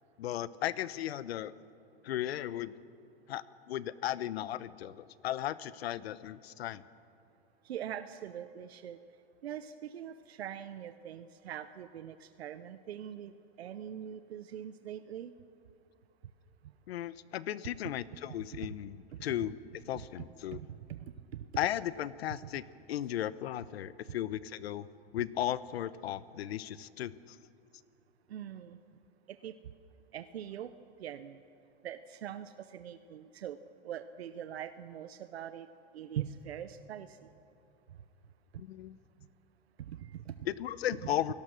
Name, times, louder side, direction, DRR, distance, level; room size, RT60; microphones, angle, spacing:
voice 1, 0.2-1.5 2.0-2.7 3.3-6.8 16.9-19.6 19.9-20.6 21.6-24.9 25.1-27.4 38.6-39.0 40.5-41.3, left 12 dB, 85° left, 17 dB, 0.9 m, -36 dB
voice 2, 7.6-9.0 9.4-13.3 13.6-15.3 18.6-18.7 19.9-20.1 20.5-21.0 21.3-21.4 28.3-28.8 29.3-29.6 30.1-30.7 31.0-31.4 31.8-33.6 33.8-35.7 35.9-37.3 39.8-40.3, right 10 dB, 90° right, 11 dB, 0.9 m, -42 dB
28.5 x 18.0 x 6.4 m, 2.6 s
hypercardioid pair, 110°, 31 cm